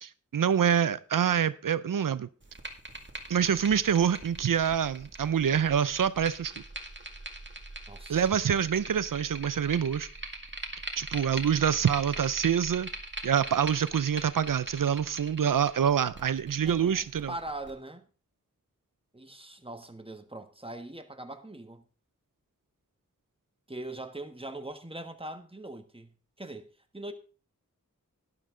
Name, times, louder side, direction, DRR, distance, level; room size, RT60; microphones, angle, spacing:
voice 1, 0.0-2.3 3.3-6.5 8.1-10.1 11.0-12.9 13.2-17.3, right 8 dB, 85° right, 0.5 m, -26 dB
sound 1, 2.4-17.7, right 2 dB, 35° right, 2.0 m, -42 dB
voice 2, 7.9-8.2 16.6-18.1 19.1-21.8 23.7-26.1 26.4-26.7 26.9-27.1, right 1 dB, 15° right, 1.3 m, -41 dB
12.0 x 10.5 x 3.7 m
wide cardioid pair, 55°, 32 cm